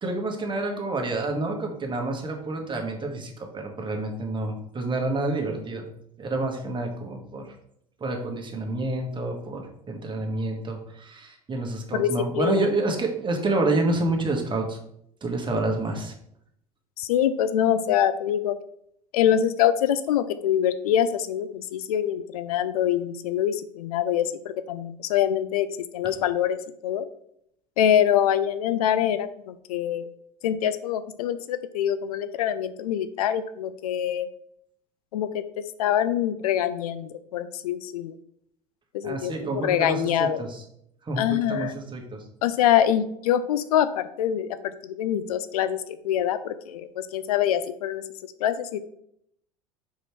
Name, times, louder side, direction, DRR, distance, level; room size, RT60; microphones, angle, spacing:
voice 1, 0.0-5.8 6.2-7.5 8.0-14.8 15.2-16.1 39.0-40.6 41.1-42.2, right 2 dB, 25° right, 2 dB, 1.7 m, -28 dB
voice 2, 11.9-12.7 17.0-18.6 19.1-25.7 25.9-26.6 26.8-27.1 27.8-30.1 30.4-34.3 35.1-35.4 35.8-38.2 38.9-40.4 41.2-41.8 42.4-44.5 44.8-48.0 48.4-48.8, left 10 dB, 75° left, 13 dB, 0.5 m, -24 dB
5.0 x 5.0 x 4.6 m, 0.73 s
hypercardioid pair, 70°, 19 cm